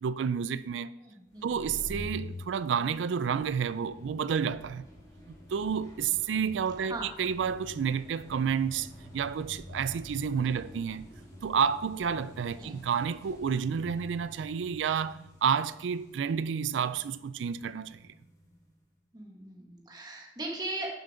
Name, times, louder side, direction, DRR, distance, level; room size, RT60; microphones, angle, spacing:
voice 1, 0.0-0.9 1.4-4.9 5.3-11.0 11.4-18.0, right 7 dB, 85° right, 0.4 m, -30 dB
voice 2, 1.0-1.7 6.8-7.1 10.4-10.7 12.5-12.9 19.1-20.9, right 2 dB, 25° right, 1.8 m, -40 dB
sound 1, 1.3-18.7, left 1 dB, 20° left, 2.3 m, -48 dB
10.5 x 7.1 x 3.8 m
head